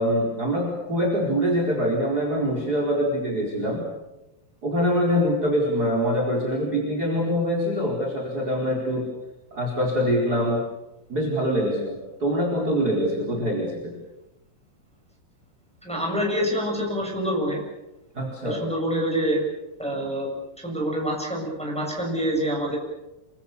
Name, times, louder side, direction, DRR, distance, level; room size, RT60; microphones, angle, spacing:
voice 1, 0.0-3.8 4.6-9.1 9.5-10.6 11.1-13.9 18.1-18.6, equal, 25° right, 0 dB, 4.6 m, -24 dB
voice 2, 15.8-17.6 18.4-19.4 19.8-20.3 20.6-22.8, equal, ahead, -1 dB, 7.2 m, -26 dB
28.5 x 25.0 x 7.0 m, 0.96 s
omnidirectional pair, 4.7 m